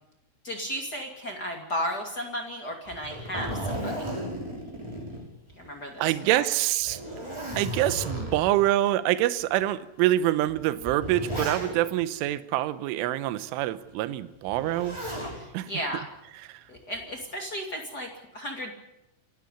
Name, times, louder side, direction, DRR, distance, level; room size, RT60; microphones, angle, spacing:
voice 1, 0.4-4.1 5.5-6.5 15.3-16.0 16.7-18.7, equal, 35° left, 2 dB, 1.7 m, -34 dB
Zipper (clothing), 2.9-5.8 6.1-6.2 6.8-8.6 9.4-9.5 10.5-12.0 14.5-15.4 16.7-17.2, equal, 5° right, 5.1 m, -35 dB
voice 2, 6.0-7.0 7.5-15.0 15.5-15.7 16.5-16.6, right 14 dB, 80° right, 13 dB, 3.3 m, -25 dB
28.5 x 12.0 x 9.9 m, 0.88 s
omnidirectional pair, 5.9 m